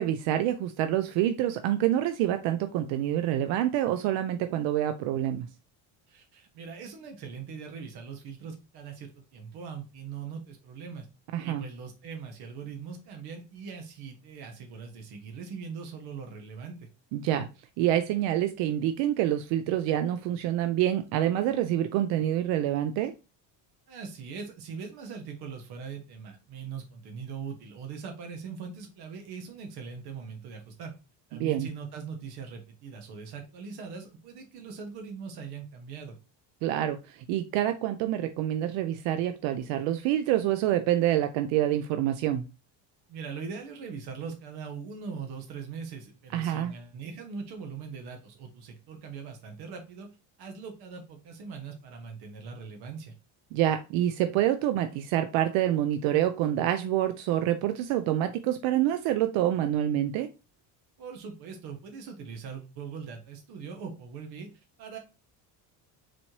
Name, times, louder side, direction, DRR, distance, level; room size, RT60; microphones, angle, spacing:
voice 1, 0.0-5.5 11.3-11.6 17.1-17.5 17.8-23.1 31.3-31.7 36.6-42.5 46.3-46.7 53.5-60.3, right 12 dB, 85° right, 9 dB, 0.5 m, -27 dB
voice 2, 6.1-11.1 11.4-16.9 23.9-30.9 31.3-36.1 43.1-50.1 50.4-53.1 61.0-64.5 64.8-65.0, right 6 dB, 60° right, 3 dB, 1.1 m, -41 dB
4.1 x 3.1 x 2.8 m, 0.29 s
cardioid pair, 150°, 43 cm